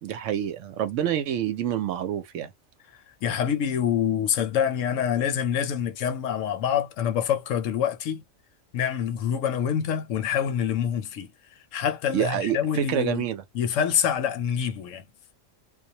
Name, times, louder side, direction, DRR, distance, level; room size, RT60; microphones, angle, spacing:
voice 1, 0.0-2.5 12.1-13.4, right 10 dB, 70° right, 0.9 m, -27 dB
voice 2, 3.2-8.2 8.7-11.3 11.7-13.3 13.5-15.0, left 8 dB, 70° left, 0.9 m, -26 dB
2.3 x 2.1 x 2.7 m
omnidirectional pair, 1.4 m